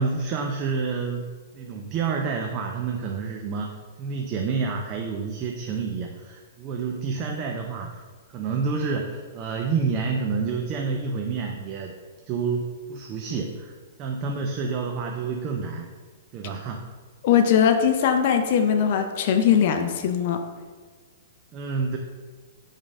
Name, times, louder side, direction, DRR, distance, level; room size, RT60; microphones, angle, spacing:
voice 1, 0.0-8.0 8.3-12.0 12.3-13.7 14.0-15.9 16.3-16.9 21.5-22.0, right 5 dB, 30° right, 2 dB, 0.4 m, -29 dB
voice 2, 17.2-20.4, left 8 dB, 45° left, 6 dB, 0.5 m, -20 dB
5.3 x 3.6 x 5.2 m, 1.5 s
hypercardioid pair, 160°, 0 cm